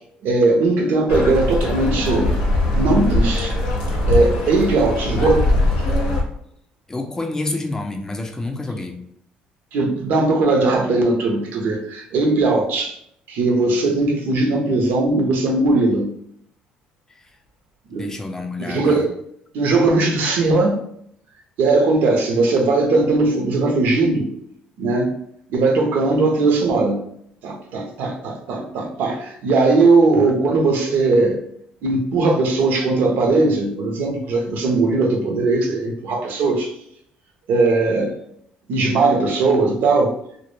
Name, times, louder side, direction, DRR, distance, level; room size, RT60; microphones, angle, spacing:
voice 1, 0.2-2.3 2.7-3.6 4.1-5.5 9.7-13.0 13.3-16.1 17.9-18.1 18.6-19.1 19.5-20.8 21.6-24.3 24.8-25.1 25.5-27.0 27.4-31.4 31.8-36.7 37.5-38.1 38.7-40.1, right 3 dB, 70° right, 2 dB, 0.6 m, -19 dB
sound 1, 1.1-6.2, left 1 dB, 85° left, 0.6 m, -21 dB
voice 2, 6.9-9.0 17.2-17.3 18.0-19.1 30.2-30.6, left 2 dB, 15° left, 3 dB, 0.4 m, -29 dB
2.1 x 2.0 x 3.1 m, 0.69 s
supercardioid pair, 70°, 3 cm